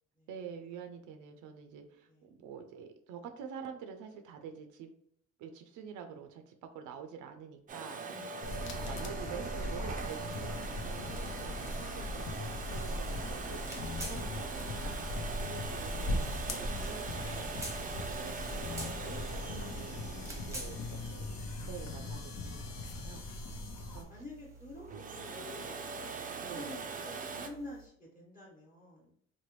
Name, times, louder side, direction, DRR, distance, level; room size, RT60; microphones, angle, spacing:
voice 1, 0.3-4.9 5.4-8.0 8.5-19.2 19.7-20.0 20.3-20.8 21.1-21.3 21.6-23.2 23.8-24.2 26.4-26.8, right 7 dB, 85° right, 6 dB, 0.5 m, -47 dB
Domestic sounds home sounds, 7.7-22.4 24.8-27.5, right 5 dB, 30° right, 0.4 m, -42 dB
voice 2, 8.1-8.6 19.4-20.4 21.1-21.2 23.0-26.1 26.5-29.1, left 2 dB, 25° left, -5 dB, 1.1 m, -50 dB
sound 1, 8.4-24.0, left 2 dB, 65° left, 0.7 m, -39 dB
sound 2, 9.4-27.9, right 2 dB, 10° right, 0.7 m, -52 dB
3.1 x 2.2 x 3.0 m, 0.66 s
cardioid pair, 90°, 30 cm